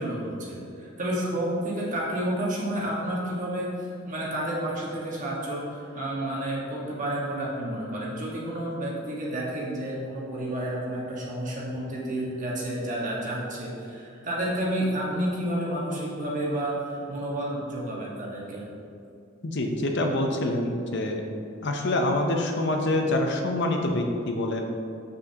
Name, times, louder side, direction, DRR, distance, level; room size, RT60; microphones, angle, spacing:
voice 1, 0.0-18.7, right 1 dB, 35° right, -5 dB, 1.4 m, -30 dB
voice 2, 19.4-21.2 21.6-24.6, left 1 dB, 50° left, 3 dB, 0.6 m, -26 dB
7.6 x 6.7 x 2.9 m, 2.6 s
head